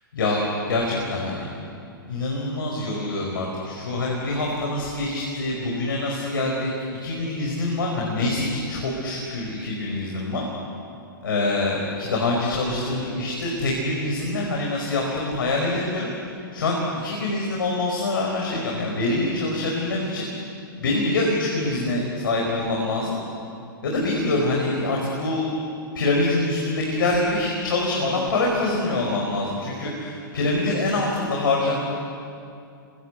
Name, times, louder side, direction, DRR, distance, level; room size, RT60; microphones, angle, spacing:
voice 1, 0.7-1.5 2.1-6.7 7.0-10.5 11.2-16.1 16.5-20.3 20.8-23.2 23.8-25.6 25.9-31.8, left 2 dB, 70° left, -1 dB, 5.0 m, -25 dB
27.0 x 24.0 x 8.3 m, 2.5 s
figure-of-eight pair, 110°, 12 cm